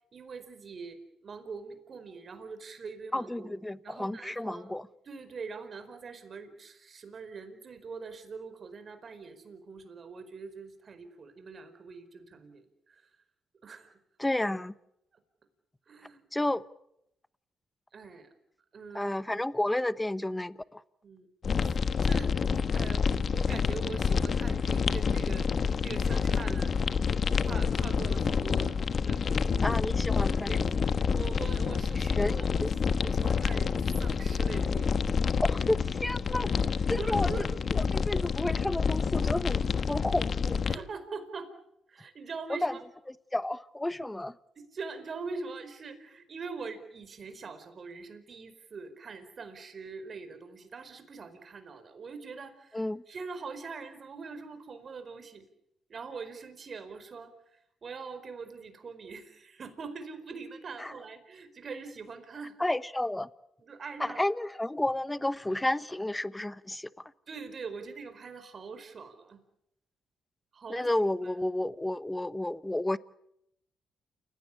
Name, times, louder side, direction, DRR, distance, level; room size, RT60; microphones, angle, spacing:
voice 1, 0.1-3.5 3.8-4.8 5.0-13.1 13.6-14.0 15.9-16.2 17.9-18.3 18.7-19.1 21.0-21.3 21.6-22.4 22.7-26.7 27.2-29.8 30.5-32.7 33.0-33.7 34.0-35.1 37.0-37.5 40.7-41.5 41.9-42.8 44.6-55.5 55.9-62.6 63.6-64.3 67.3-69.4 70.5-70.9 71.2-71.3, right 4 dB, 45° right, 9 dB, 4.7 m, -43 dB
voice 2, 3.1-4.8 14.2-14.7 16.3-16.6 18.9-20.8 29.6-30.5 32.0-32.7 35.4-36.5 36.9-37.3 37.7-39.6 39.9-40.6 42.5-42.7 43.3-44.4 52.7-53.0 60.8-60.9 62.6-63.3 64.0-66.9 70.7-73.0, left 1 dB, 10° left, 15 dB, 1.0 m, -31 dB
sound 1, 21.4-40.8, left 6 dB, 45° left, 1.3 m, -28 dB
29.0 x 17.0 x 8.5 m, 0.78 s
cardioid pair, 90°, 0 cm